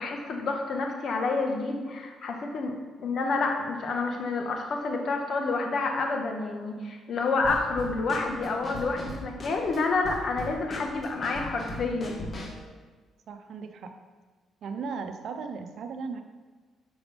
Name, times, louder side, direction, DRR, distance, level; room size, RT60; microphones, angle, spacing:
voice 1, 0.0-2.7 3.0-12.2, left 3 dB, 60° left, 3 dB, 1.4 m, -29 dB
Drum kit / Snare drum, 7.4-12.7, left 2 dB, 35° left, 1.8 m, -40 dB
voice 2, 13.3-14.0 14.6-16.2, right 5 dB, 65° right, 7 dB, 0.9 m, -36 dB
10.5 x 6.3 x 3.5 m, 1.4 s
cardioid pair, 90°, 0 cm